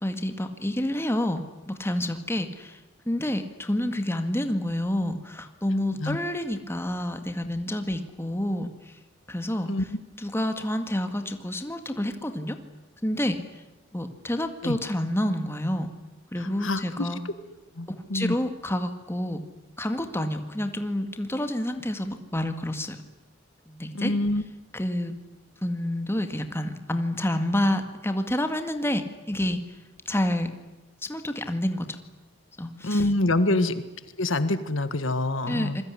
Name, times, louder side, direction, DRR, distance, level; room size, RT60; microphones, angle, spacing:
voice 1, 0.0-2.8 3.1-9.0 9.3-9.7 10.2-12.6 13.0-13.4 13.9-15.9 16.3-17.2 17.9-19.4 19.8-23.0 23.7-24.1 24.7-25.1 25.6-29.6 30.1-30.5 31.0-32.0 32.6-33.1 33.5-33.7 35.5-35.8, left 1 dB, 10° left, 7 dB, 2.0 m, -28 dB
voice 2, 16.4-17.1 17.8-18.4 23.9-24.4 32.8-33.8 34.2-35.8, left 2 dB, 70° left, 11 dB, 1.6 m, -26 dB
27.0 x 21.5 x 9.9 m, 1.0 s
head